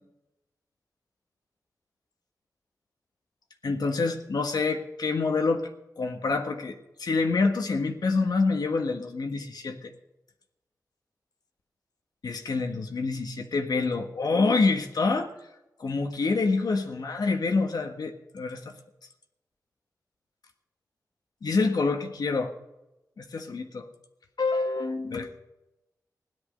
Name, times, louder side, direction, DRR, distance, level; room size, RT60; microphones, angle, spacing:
voice 1, 3.6-5.7 6.0-9.9 12.2-15.3 15.8-18.7 21.4-22.5 23.2-23.9 24.4-25.3, left 3 dB, 80° left, 4 dB, 1.5 m, -27 dB
17.0 x 11.0 x 5.3 m, 0.95 s
wide cardioid pair, 80°, 7 cm